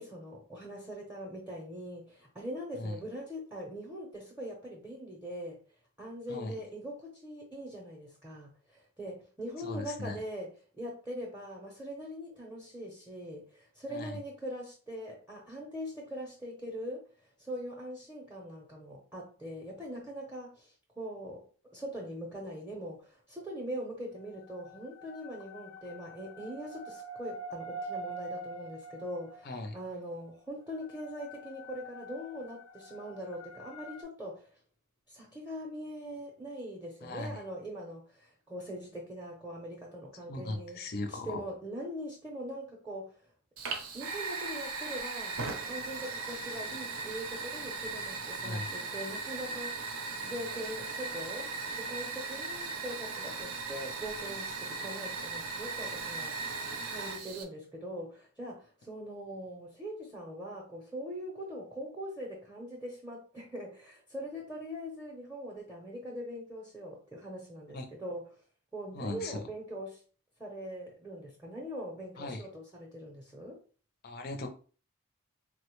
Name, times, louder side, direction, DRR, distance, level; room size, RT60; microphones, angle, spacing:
voice 1, 0.0-5.6 6.0-21.4 21.7-34.5 35.1-40.8 41.1-43.2 43.9-45.4 45.7-49.9 50.2-51.5 51.8-56.4 56.9-68.2 68.7-70.0 70.4-73.6, equal, 10° right, -2 dB, 0.6 m, -42 dB
voice 2, 9.6-10.2 13.9-14.2 29.4-29.8 37.0-37.4 40.2-41.4 48.4-48.7 67.7-67.8 68.9-69.4 72.2-72.4 74.0-74.5, left 2 dB, 45° left, 5 dB, 0.5 m, -38 dB
sound 1, 24.2-29.8 30.7-34.0, right 2 dB, 90° left, 0.6 m, -45 dB
Fire, 43.6-57.4, right 4 dB, 70° right, 0.6 m, -38 dB
3.5 x 2.0 x 3.0 m, 0.40 s
head